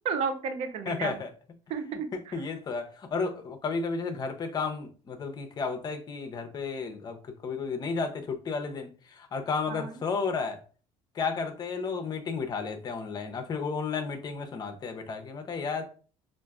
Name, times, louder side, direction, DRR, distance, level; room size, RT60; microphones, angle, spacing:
voice 1, 0.0-1.2 1.7-2.4 9.7-9.9, right 5 dB, 55° right, 0.5 m, -32 dB
voice 2, 0.9-1.3 2.1-10.6 11.1-15.9, left 4 dB, 35° left, 0.6 m, -33 dB
4.4 x 2.5 x 2.3 m
cardioid pair, 120°, 12 cm